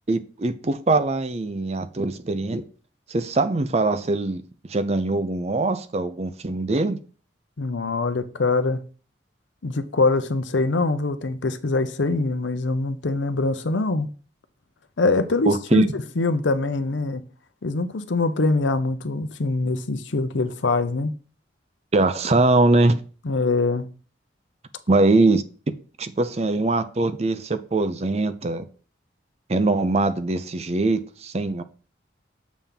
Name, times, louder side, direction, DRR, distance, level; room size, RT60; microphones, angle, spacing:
voice 1, 0.1-2.6 3.1-4.4 4.7-7.0 15.5-15.9 21.9-23.0 24.9-28.7 29.5-31.6, right 2 dB, 35° right, 0.5 m, -22 dB
voice 2, 7.6-8.8 9.6-14.1 15.0-17.2 17.6-21.1 23.2-23.9, left 3 dB, 80° left, 0.7 m, -23 dB
7.2 x 3.5 x 5.6 m
head